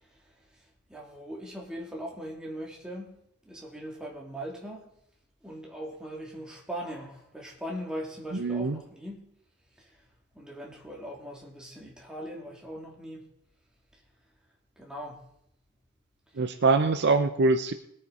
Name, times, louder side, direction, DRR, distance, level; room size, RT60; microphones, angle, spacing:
voice 1, 0.9-3.2 3.5-4.9 5.4-9.3 10.3-13.3 14.8-15.2, equal, 5° right, 2.8 m, -40 dB
voice 2, 8.3-8.8 16.4-17.7, right 3 dB, 50° right, 0.6 m, -24 dB
21.0 x 8.9 x 4.2 m
head